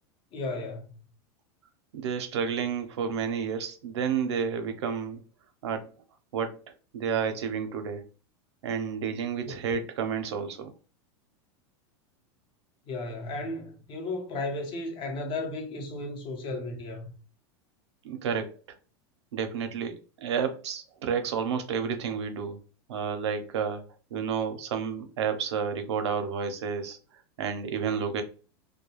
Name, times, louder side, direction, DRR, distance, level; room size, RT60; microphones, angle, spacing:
voice 1, 0.3-0.9 9.4-9.5 12.9-17.1, left 2 dB, 40° left, 0.8 m, -34 dB
voice 2, 1.9-5.2 5.6-5.9 6.3-6.6 6.9-8.0 8.6-10.7 18.0-18.5 19.3-22.6 22.9-23.8 24.1-27.0 27.4-28.2, right 6 dB, 90° right, 0.6 m, -30 dB
2.2 x 2.2 x 3.0 m
supercardioid pair, 125°, 14 cm